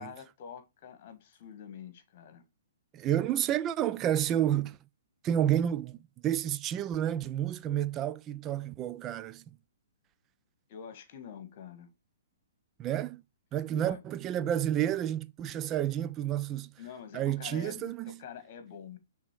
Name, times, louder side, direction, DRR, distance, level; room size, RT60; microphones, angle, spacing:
voice 1, 0.0-2.4 10.7-11.9 13.7-14.0 16.8-19.0, left 8 dB, 50° left, 1.7 m, -46 dB
voice 2, 2.9-4.8 5.2-6.0 6.2-9.4 12.8-13.2 13.5-16.7 17.1-18.2, right 11 dB, 25° right, 0.4 m, -30 dB
6.0 x 3.6 x 4.6 m
hypercardioid pair, 140°, 0 cm